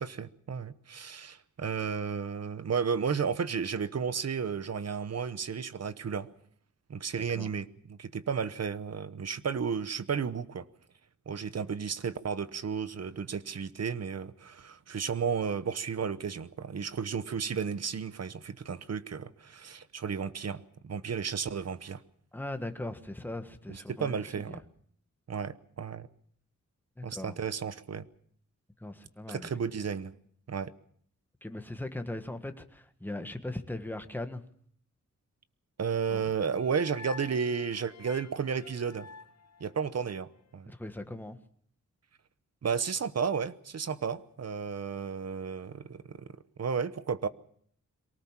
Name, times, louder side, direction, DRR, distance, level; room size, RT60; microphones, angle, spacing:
voice 1, 0.0-6.3 6.9-10.6 11.3-22.0 23.7-24.6 25.3-26.1 27.0-28.1 29.3-30.1 30.5-30.7 35.8-39.1 39.6-40.7 42.6-46.3 46.6-47.3, right 6 dB, 55° right, 1.1 m, -33 dB
voice 2, 22.3-24.6 27.0-27.4 28.8-29.5 31.4-34.4 36.1-36.2 40.7-41.4, left 1 dB, 5° left, 1.5 m, -39 dB
sound 1, 36.2-40.4, left 5 dB, 60° left, 0.9 m, -49 dB
23.5 x 18.5 x 7.4 m
wide cardioid pair, 180°, 30 cm